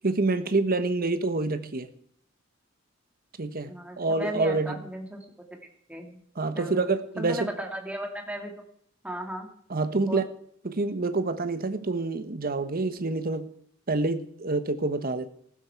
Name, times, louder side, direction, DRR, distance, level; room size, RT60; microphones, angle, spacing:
voice 1, 0.0-1.9 3.4-4.8 6.4-7.5 9.7-10.2 10.6-13.5 13.9-15.3, right 3 dB, 50° right, 1.1 m, -27 dB
voice 2, 3.7-5.3 5.9-6.2 6.6-6.8 7.2-8.5 9.0-9.5 10.1-10.2, right 1 dB, 5° right, 2.4 m, -35 dB
15.0 x 12.5 x 4.7 m
head